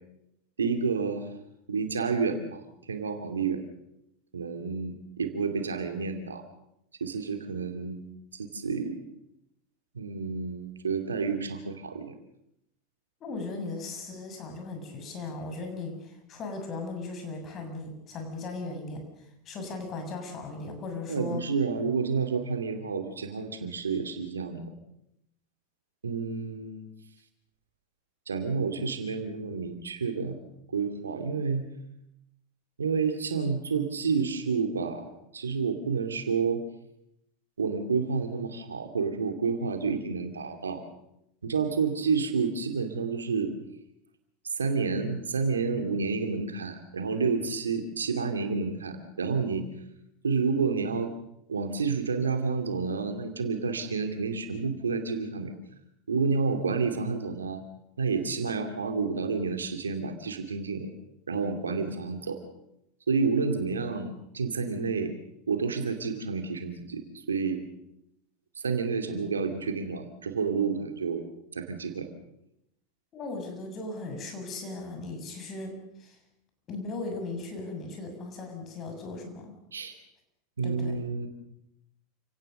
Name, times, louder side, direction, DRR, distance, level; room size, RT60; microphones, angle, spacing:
voice 1, 0.6-1.3 1.7-3.6 4.3-6.4 7.0-8.0 8.3-9.0 9.9-12.1 21.1-24.6 26.0-26.9 28.3-30.4 30.7-31.7 32.8-35.0 35.3-36.6 37.6-40.8 41.4-43.5 44.6-49.7 50.2-51.1 51.5-55.5 56.1-57.6 58.0-60.9 61.3-62.4 63.1-65.1 65.5-67.6 68.6-71.2 71.5-72.1 79.7-79.9 80.6-81.3, right 5 dB, 85° right, 7 dB, 2.6 m, -29 dB
voice 2, 13.2-21.5 73.1-76.2 76.7-79.5 80.6-81.0, left 3 dB, 40° left, 5 dB, 7.0 m, -37 dB
28.5 x 17.5 x 6.7 m, 0.80 s
hypercardioid pair, 85°, 0 cm